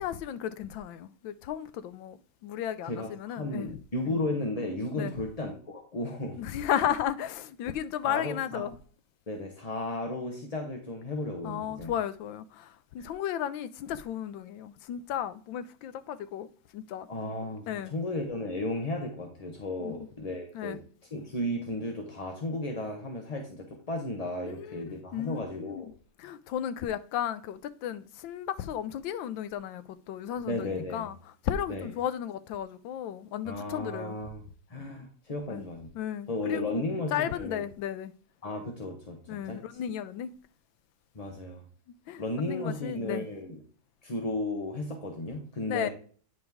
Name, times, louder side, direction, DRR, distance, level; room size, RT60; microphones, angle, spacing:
voice 1, 0.0-2.2 2.4-3.8 5.0-5.1 6.3-8.7 11.4-16.5 16.7-17.1 17.7-17.9 19.8-20.1 20.5-20.8 24.4-25.9 26.2-31.1 31.4-34.2 34.9-35.1 35.5-35.6 35.9-36.8 37.1-38.1 39.3-40.3 42.1-42.2 42.5-43.3 45.7-45.9, left 10 dB, 85° left, 1.3 m, -34 dB
voice 2, 2.8-6.4 8.0-8.6 9.3-11.9 13.0-13.1 17.1-20.8 21.1-25.9 30.4-31.1 31.7-31.9 33.4-34.4 34.7-35.9 36.3-37.6 38.4-39.8 41.1-41.6 42.2-43.6 44.0-45.9, left 2 dB, 30° left, 0.7 m, -34 dB
9.3 x 5.0 x 3.5 m
omnidirectional pair, 2.1 m